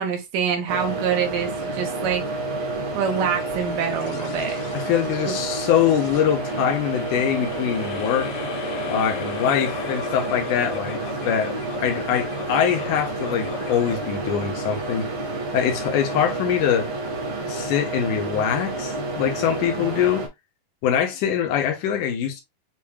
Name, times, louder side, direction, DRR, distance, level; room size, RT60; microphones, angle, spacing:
voice 1, 0.0-2.2 2.9-4.6 5.3-5.4, right 7 dB, 75° right, 2.6 m, -25 dB
sound 1, 0.7-20.3, right 2 dB, 50° right, 1.8 m, -30 dB
sound 2, 3.0-15.7, left 9 dB, 90° left, 2.5 m, -38 dB
voice 2, 4.7-8.3 8.9-11.0 11.2-15.1 15.5-16.9 17.4-20.3 20.8-22.4, left 9 dB, 70° left, 2.3 m, -23 dB
7.3 x 3.0 x 2.2 m
omnidirectional pair, 4.0 m